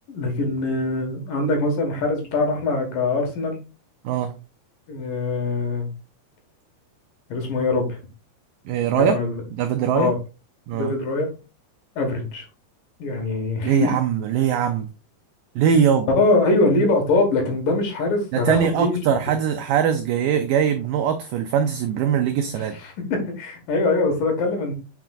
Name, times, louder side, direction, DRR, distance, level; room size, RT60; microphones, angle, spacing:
voice 1, 0.1-3.6 4.9-5.9 7.3-8.0 8.9-9.4 9.9-10.2 10.7-11.3 12.0-12.4 13.0-13.9 16.1-19.0 22.5-24.7, left 3 dB, 60° left, 2.8 m, -23 dB
voice 2, 8.7-9.2 9.6-10.1 10.7-10.9 13.6-14.9 15.6-16.1 18.3-22.8, right 8 dB, 85° right, 2.0 m, -21 dB
7.9 x 5.9 x 2.4 m
omnidirectional pair, 4.8 m